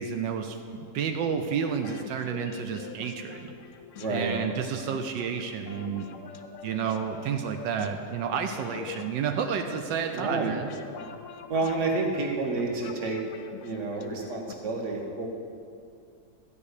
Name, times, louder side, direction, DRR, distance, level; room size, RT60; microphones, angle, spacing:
voice 1, 0.0-3.5 4.1-6.1 6.6-10.7, right 7 dB, 85° right, 5 dB, 1.4 m, -30 dB
sound 1, 1.8-14.5, left 8 dB, 70° left, 0.7 m, -45 dB
voice 2, 3.9-4.4 10.1-10.5 11.5-13.2 13.6-15.3, right 3 dB, 45° right, 1 dB, 1.6 m, -29 dB
13.0 x 5.3 x 8.2 m, 2.4 s
omnidirectional pair, 1.9 m